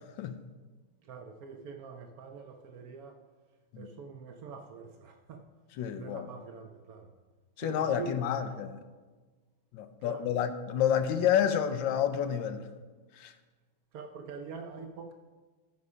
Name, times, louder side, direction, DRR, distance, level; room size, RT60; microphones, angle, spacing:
voice 1, 1.0-3.2 3.8-5.5 5.9-7.1 7.6-8.6 10.0-10.4 13.9-15.1, right 5 dB, 85° right, 0.7 m, -44 dB
voice 2, 5.8-6.3 7.6-8.7 9.7-12.7 13.2-13.3, left 9 dB, 70° left, 1.2 m, -29 dB
14.5 x 4.9 x 5.5 m
omnidirectional pair, 2.4 m